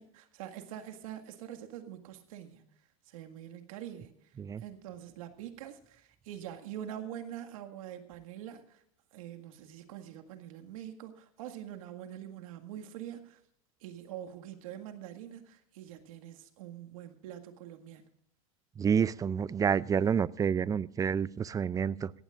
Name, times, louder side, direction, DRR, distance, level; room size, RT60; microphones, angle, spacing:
voice 1, 0.0-2.6 3.1-4.1 4.6-8.8 9.1-13.4 13.8-18.1, right 11 dB, 75° right, 6 dB, 1.9 m, -45 dB
voice 2, 18.8-22.1, right 7 dB, 20° right, 21 dB, 0.4 m, -29 dB
18.5 x 15.0 x 2.5 m, 0.67 s
supercardioid pair, 110°, 18 cm